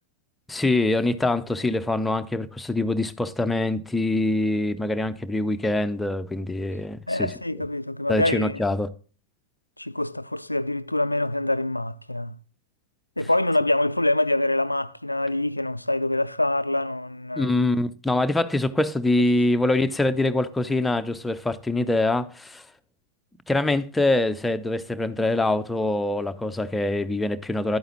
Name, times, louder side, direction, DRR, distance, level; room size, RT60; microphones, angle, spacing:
voice 1, 0.5-7.3 8.1-8.9 17.3-22.6 23.5-27.8, left 2 dB, 10° left, 0.6 m, -24 dB
voice 2, 7.1-8.6 9.8-12.4 13.2-17.5, left 1 dB, 85° left, 0.4 m, -25 dB
11.0 x 8.8 x 3.0 m
figure-of-eight pair, 90°, 0 cm